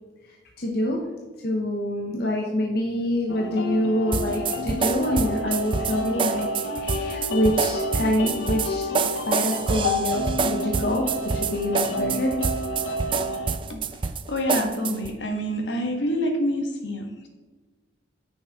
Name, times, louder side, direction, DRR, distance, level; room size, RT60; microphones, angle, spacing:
voice 1, 0.3-1.0 1.4-6.5 6.8-11.1 11.3-12.3, left 1 dB, 55° left, 0 dB, 0.9 m, -26 dB
sound 1, 3.3-13.6, left 1 dB, 90° left, 0.9 m, -30 dB
sound 2, 4.1-15.1, right 5 dB, 25° right, 0.3 m, -27 dB
voice 2, 13.7-14.0 14.3-17.3, equal, 75° left, 3 dB, 1.5 m, -27 dB
9.4 x 6.3 x 3.6 m, 1.3 s
head